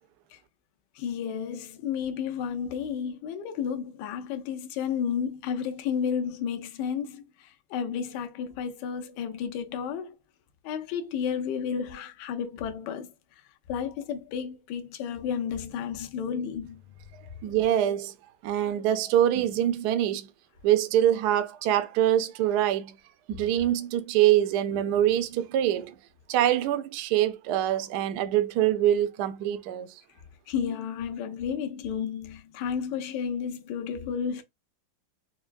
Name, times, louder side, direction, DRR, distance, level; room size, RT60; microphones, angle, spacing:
voice 1, 1.0-10.1 10.6-13.1 13.7-16.8 30.5-34.4, left 7 dB, 70° left, 1.1 m, -32 dB
voice 2, 17.4-18.1 18.4-20.3 20.6-22.9 23.3-26.0 26.3-29.9, right 12 dB, 90° right, 0.9 m, -24 dB
4.5 x 2.2 x 2.5 m
omnidirectional pair, 2.3 m